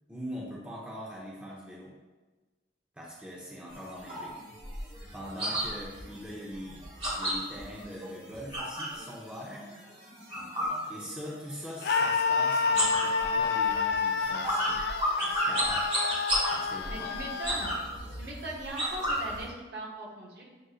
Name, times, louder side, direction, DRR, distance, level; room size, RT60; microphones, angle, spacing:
voice 1, 0.1-1.9 3.0-4.4 5.1-6.9 7.1-9.7 10.9-14.8 15.2-15.9 16.5-17.3, equal, 5° right, -5 dB, 0.5 m, -42 dB
sound 1, 3.7-9.0 9.4-11.5 11.8-12.3 12.6-19.4, equal, 30° right, 1.3 m, -32 dB
Screaming, 11.8-17.8, left 5 dB, 55° left, 0.3 m, -29 dB
voice 2, 16.9-17.7 18.1-20.5, right 1 dB, 60° right, -2 dB, 0.9 m, -40 dB
7.6 x 2.5 x 2.4 m, 1.2 s
head